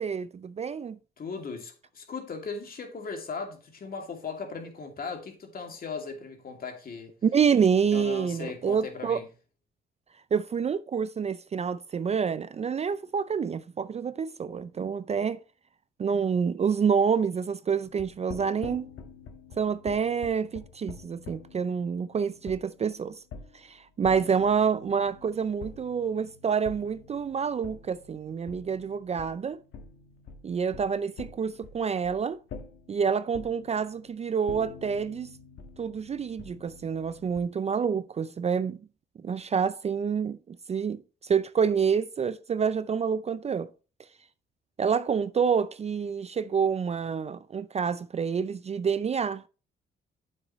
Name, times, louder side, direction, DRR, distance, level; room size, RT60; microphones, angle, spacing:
voice 1, 0.0-1.0 7.2-9.2 10.3-15.4 16.0-18.9 19.6-23.2 23.5-29.6 30.4-32.4 32.9-35.3 35.8-38.8 39.2-43.7 44.8-49.5, right 6 dB, 35° right, 0.4 m, -27 dB
voice 2, 1.2-7.1 7.9-9.3, left 4 dB, 45° left, 2.5 m, -38 dB
sound 1, 17.8-37.4, left 4 dB, 75° left, 1.6 m, -47 dB
9.0 x 7.7 x 3.1 m
cardioid pair, 90°, 20 cm